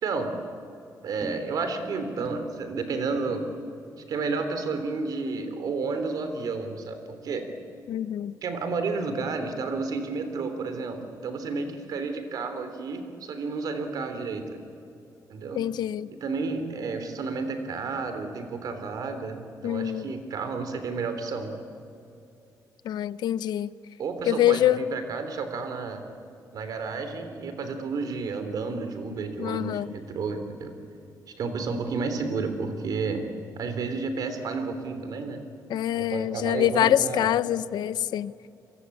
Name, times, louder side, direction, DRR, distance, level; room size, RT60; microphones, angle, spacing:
voice 1, 1.0-3.4 4.1-7.5 8.4-14.6 15.3-15.6 16.2-21.5 24.0-26.0 26.5-30.7 31.4-33.3 33.6-35.4 35.9-37.3, right 4 dB, 60° right, 8 dB, 3.5 m, -31 dB
sound 1, 1.2-7.8 8.1-8.5 8.8-8.9, right 1 dB, 15° right, 2.5 m, -45 dB
voice 2, 7.9-8.4 15.5-16.1 19.6-20.1 22.8-23.7 24.3-24.8 29.4-29.9 35.7-38.3, left 12 dB, 85° left, 17 dB, 0.7 m, -25 dB
29.0 x 23.0 x 8.6 m, 2.8 s
cardioid pair, 155°, 7 cm